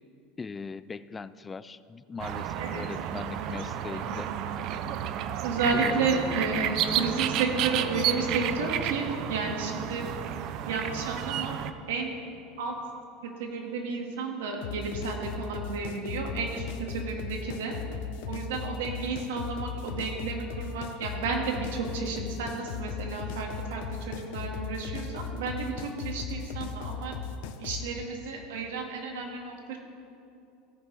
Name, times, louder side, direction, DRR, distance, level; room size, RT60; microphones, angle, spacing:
voice 1, 0.4-4.3 5.7-6.1, left 4 dB, 20° left, 16 dB, 0.3 m, -39 dB
sound 1, 2.2-11.7, right 10 dB, 55° right, 0.5 m, -31 dB
voice 2, 3.8-4.1 5.4-10.1 10.7-11.6 11.9-12.2 12.6-12.8 13.2-17.8 18.3-27.2 27.6-29.8, right 4 dB, 85° right, 1 dB, 1.9 m, -32 dB
sound 2, 14.6-27.9, left 6 dB, 70° left, 0.7 m, -37 dB
16.0 x 9.3 x 3.4 m, 2.7 s
supercardioid pair, 115°, 0 cm